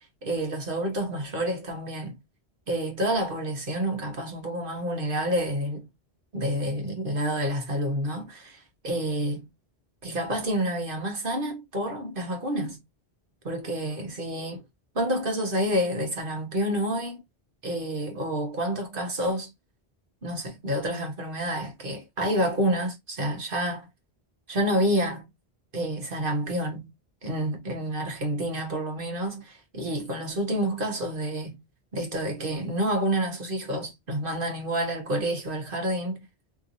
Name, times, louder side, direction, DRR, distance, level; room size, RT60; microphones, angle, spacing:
voice 1, 0.2-2.2 2.7-5.9 6.3-9.5 10.0-12.8 13.4-14.6 14.9-17.2 17.6-19.5 20.2-23.8 24.5-25.3 25.7-26.9 27.2-31.6 31.9-36.2, right 1 dB, 60° right, 1.5 m, -28 dB
3.4 x 3.0 x 2.7 m
omnidirectional pair, 1.0 m